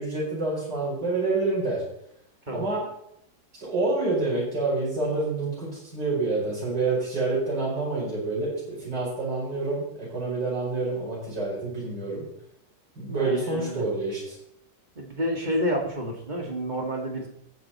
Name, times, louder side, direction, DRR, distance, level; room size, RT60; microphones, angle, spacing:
voice 1, 0.0-1.8 2.5-2.8 3.6-12.2 13.0-14.4, right 3 dB, 90° right, -6 dB, 5.7 m, -27 dB
voice 2, 13.1-13.8 15.0-17.3, equal, 25° right, 1 dB, 2.1 m, -29 dB
15.0 x 8.2 x 4.2 m, 0.75 s
omnidirectional pair, 1.8 m